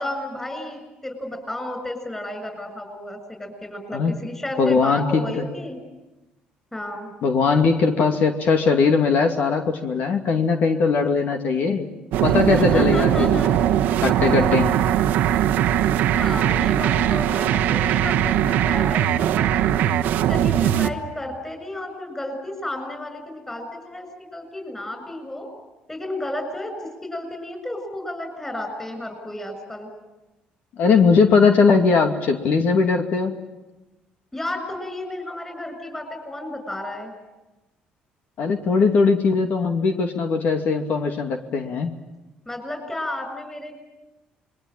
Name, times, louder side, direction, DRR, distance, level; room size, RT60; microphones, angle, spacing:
voice 1, 0.0-5.8 6.7-7.1 12.5-13.6 16.2-19.8 20.3-25.5 25.9-29.9 34.3-37.1 42.5-43.7, left 1 dB, 10° left, 6 dB, 7.1 m, -32 dB
voice 2, 4.6-5.4 7.2-11.9 12.2-13.4 14.0-14.7 30.8-33.3 38.4-41.9, left 4 dB, 65° left, 5 dB, 2.5 m, -20 dB
sound 1, 12.1-20.9, right 11 dB, 80° right, 1.1 m, -20 dB
27.0 x 22.5 x 9.0 m, 1.0 s
cardioid pair, 95°, 3 cm